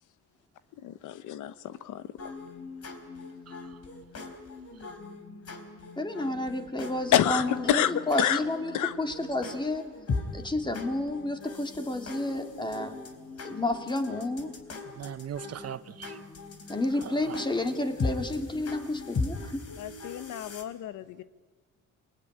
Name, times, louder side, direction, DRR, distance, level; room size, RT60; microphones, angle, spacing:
voice 1, 0.8-2.1 7.1-8.4 8.7-8.9 19.8-21.2, left 11 dB, 80° left, 13 dB, 1.0 m, -28 dB
sound 1, 2.2-20.6, left 3 dB, 55° left, 4.0 m, -39 dB
voice 2, 6.0-8.7 9.0-9.8 10.3-12.9 13.4-14.5 16.7-19.7, left 2 dB, 15° left, 5 dB, 2.8 m, -30 dB
voice 3, 14.9-16.2 17.0-17.4, right 9 dB, 55° right, 13 dB, 1.0 m, -39 dB
27.5 x 20.5 x 9.8 m, 1.4 s
cardioid pair, 90°, 30 cm